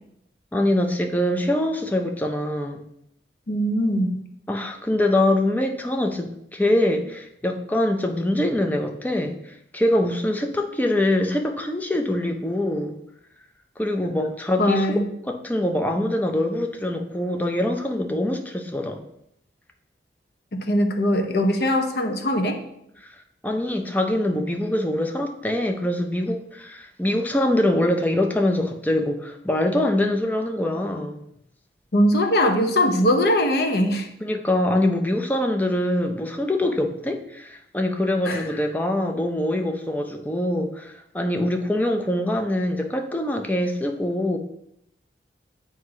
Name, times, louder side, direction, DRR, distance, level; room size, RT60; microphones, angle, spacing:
voice 1, 0.5-2.9 4.5-13.0 13.8-15.0 15.3-19.0 23.0-31.2 34.2-44.4, left 1 dB, 10° left, 4 dB, 0.4 m, -24 dB
voice 2, 3.5-4.2 14.6-15.1 20.5-22.6 31.9-34.1 38.2-38.5, equal, 60° left, 5 dB, 0.7 m, -21 dB
7.9 x 2.7 x 4.7 m, 0.77 s
head